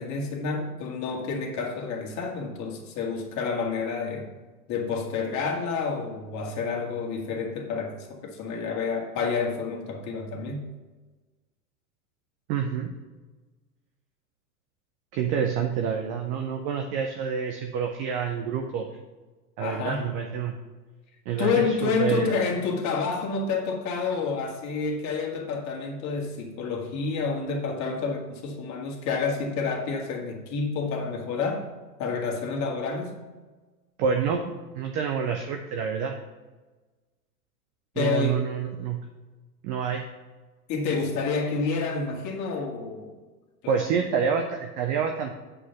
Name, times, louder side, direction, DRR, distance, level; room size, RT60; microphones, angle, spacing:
voice 1, 0.0-4.3 4.7-10.7 19.6-20.0 21.4-31.6 32.0-33.1 38.0-38.5 40.7-43.1 43.6-44.0, left 4 dB, 35° left, 1 dB, 2.0 m, -29 dB
voice 2, 12.5-12.9 15.1-18.9 19.6-20.6 21.3-22.3 34.0-36.1 38.0-39.1 39.6-40.0 43.7-45.3, right 6 dB, 20° right, 4 dB, 0.3 m, -28 dB
8.6 x 4.9 x 5.9 m, 1.3 s
hypercardioid pair, 100°, 46 cm